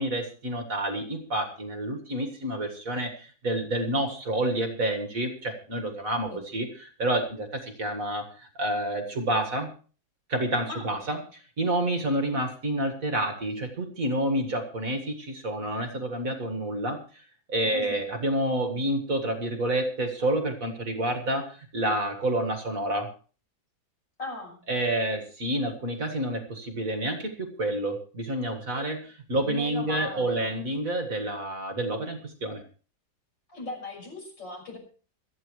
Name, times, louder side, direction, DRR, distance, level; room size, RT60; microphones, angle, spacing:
voice 1, 0.0-9.7 10.3-17.2 17.5-23.1 24.7-32.6, right 1 dB, 45° right, 5 dB, 2.1 m, -29 dB
voice 2, 17.7-18.0 24.2-24.6 29.4-30.7 33.5-34.8, left 2 dB, 70° left, 2 dB, 6.9 m, -38 dB
27.0 x 9.1 x 3.2 m, 0.39 s
omnidirectional pair, 2.1 m